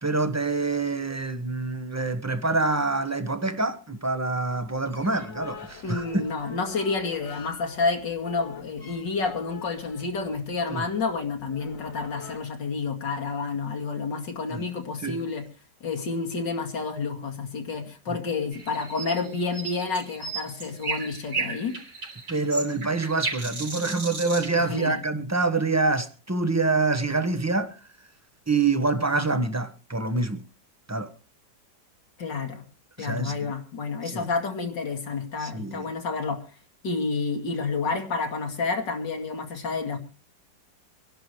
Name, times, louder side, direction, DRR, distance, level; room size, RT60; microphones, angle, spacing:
voice 1, 0.0-6.2 10.7-10.8 14.5-14.6 15.0-15.2 18.1-18.2 22.3-27.7 28.5-30.4 30.9-31.1 33.0-33.5 34.1-34.3 35.4-35.9, right 3 dB, 10° right, 1.0 m, -26 dB
sound 1, 4.5-12.4, left 5 dB, 50° left, 1.9 m, -44 dB
voice 2, 5.8-15.5 15.8-21.8 24.7-25.0 32.2-32.6 33.0-36.4 36.8-40.0, left 4 dB, 85° left, 2.8 m, -29 dB
sound 2, 18.5-24.9, right 3 dB, 75° right, 4.1 m, -34 dB
25.5 x 11.5 x 3.3 m
omnidirectional pair, 1.9 m